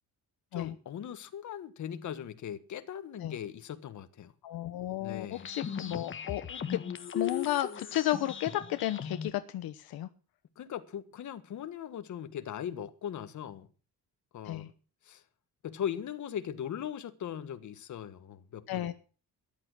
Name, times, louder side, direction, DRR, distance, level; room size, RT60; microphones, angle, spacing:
voice 1, 0.5-4.3 5.0-5.5 10.6-13.7 14.3-14.7 15.0-15.2 15.6-18.9, left 9 dB, 55° left, 1.5 m, -39 dB
voice 2, 4.4-6.8 7.1-10.1 14.4-14.7 18.7-18.9, left 14 dB, 75° left, 1.1 m, -33 dB
sound 1, 5.3-9.3, left 7 dB, 35° left, 1.3 m, -37 dB
14.0 x 11.0 x 6.2 m
cardioid pair, 145°, 36 cm